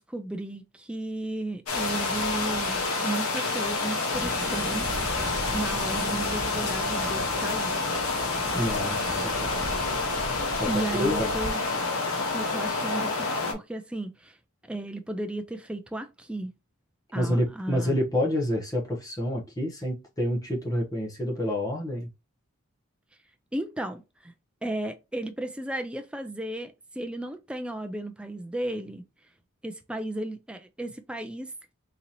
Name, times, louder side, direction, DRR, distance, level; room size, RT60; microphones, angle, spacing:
voice 1, 0.0-4.9 5.5-7.8 10.7-11.6 12.3-14.4 14.7-16.5 17.1-18.0 23.5-24.3 24.6-29.0 29.6-31.5, right 1 dB, 5° right, 0.4 m, -34 dB
sound 1, 1.7-13.5, left 3 dB, 80° left, 1.2 m, -28 dB
sound 2, 4.1-11.5, right 1 dB, 40° right, 1.1 m, -38 dB
voice 2, 8.5-9.8 10.5-10.7 11.0-11.3 17.1-22.1, left 1 dB, 15° left, 0.8 m, -28 dB
3.9 x 2.8 x 2.8 m
head